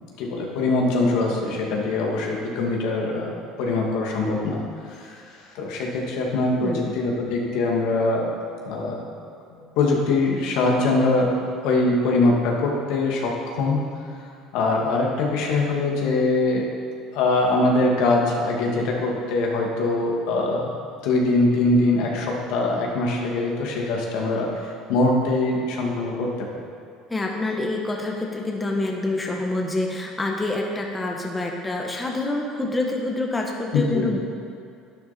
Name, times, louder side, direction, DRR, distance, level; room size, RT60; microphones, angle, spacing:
voice 1, 0.2-4.6 4.9-8.3 8.7-9.0 9.5-11.3 11.6-13.8 14.5-16.7 17.1-20.7 21.0-26.5 33.7-34.1, left 2 dB, 75° left, -1 dB, 2.2 m, -23 dB
voice 2, 6.6-7.0 27.1-34.2, left 2 dB, 15° left, 0 dB, 1.4 m, -27 dB
11.5 x 9.9 x 4.3 m, 2.5 s
supercardioid pair, 90°, 0 cm